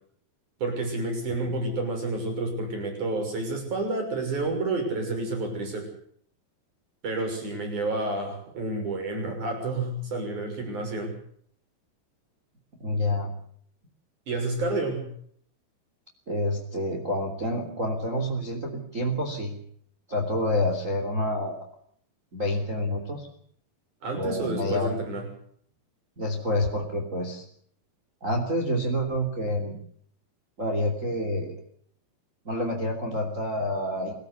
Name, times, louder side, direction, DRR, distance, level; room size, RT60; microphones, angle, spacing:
voice 1, 0.6-5.9 7.0-11.1 14.3-15.1 24.0-25.2, right 2 dB, 45° right, 4 dB, 7.6 m, -29 dB
voice 2, 12.8-13.3 16.3-19.6 20.1-21.6 22.3-23.3 24.1-24.9 26.2-27.4 28.2-29.8 30.6-31.5 32.4-34.1, left 1 dB, 20° right, 2 dB, 3.0 m, -28 dB
24.5 x 15.5 x 8.2 m, 0.62 s
omnidirectional pair, 4.9 m